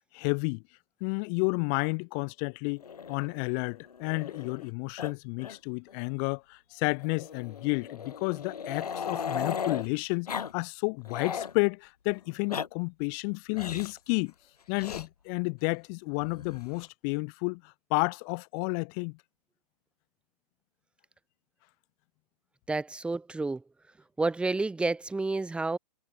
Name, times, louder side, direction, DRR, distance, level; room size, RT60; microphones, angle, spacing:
voice 1, 0.1-0.6 1.0-14.3 14.7-19.2, left 40 dB or more, 30° left, 0.6 m, -31 dB
Growling, 2.8-4.7 5.0-5.1 5.4-5.6 5.9-6.0 7.0-9.9 10.3-10.5 10.8-11.5 12.3-12.7 13.5-14.0 14.8-15.1 16.2-16.9, left 7 dB, 70° left, 1.0 m, -37 dB
voice 2, 22.7-23.6 24.2-25.8, right 3 dB, 5° right, 1.1 m, -30 dB
figure-of-eight pair, 110°, 21 cm